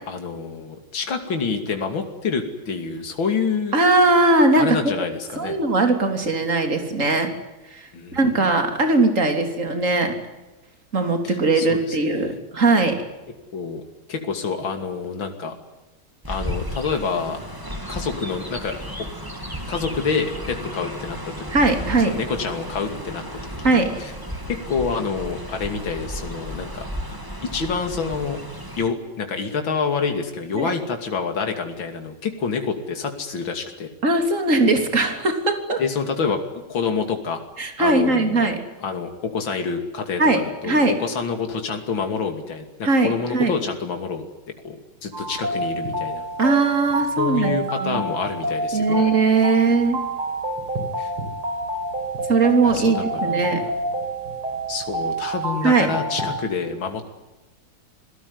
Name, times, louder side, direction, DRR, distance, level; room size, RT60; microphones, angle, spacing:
voice 1, 0.1-3.7 4.6-5.6 7.9-8.5 11.2-12.4 13.5-13.8 14.1-15.6 16.3-17.4 17.9-19.1 19.7-21.3 22.0-24.1 24.5-26.9 27.4-28.4 28.8-33.9 35.8-36.4 36.7-37.4 37.8-38.5 38.8-44.2 44.6-44.8 45.0-46.2 47.2-49.0 51.0-51.1 52.6-53.7 54.7-57.1, left 5 dB, 65° left, 5 dB, 3.4 m, -27 dB
voice 2, 3.7-4.9 5.4-7.3 7.7-10.1 10.9-13.0 21.5-22.1 23.6-23.9 30.5-30.7 34.0-35.8 37.6-38.6 40.2-40.9 42.8-43.5 46.4-47.5 47.8-48.0 48.7-50.0 52.3-53.6 55.6-55.9, right 3 dB, 35° right, 5 dB, 3.8 m, -19 dB
Chirp tweet, 16.2-28.9, equal, 10° right, 2.8 m, -34 dB
sound 1, 45.1-56.4, right 1 dB, 90° right, 5.3 m, -28 dB
27.0 x 18.5 x 9.7 m, 1.1 s
omnidirectional pair, 2.3 m